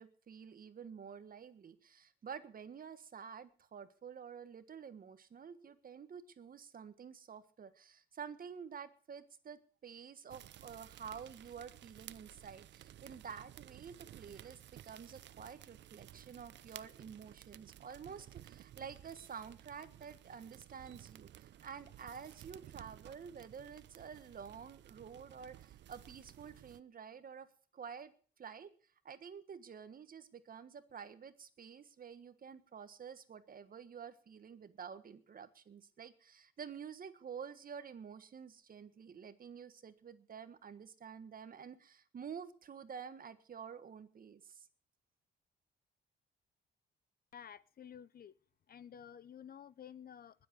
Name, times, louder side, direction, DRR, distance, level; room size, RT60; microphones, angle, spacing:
voice 1, 0.0-27.5 27.7-28.1 28.4-28.7 29.0-44.7, right 7 dB, 45° right, 12 dB, 1.5 m, -50 dB
sound 1, 10.3-26.8, right 12 dB, 65° right, 0.6 m, -56 dB
voice 2, 47.3-48.3 48.7-50.5, left 8 dB, 50° left, 17 dB, 0.8 m, -52 dB
20.5 x 7.8 x 6.6 m, 0.43 s
cardioid pair, 90°, 20 cm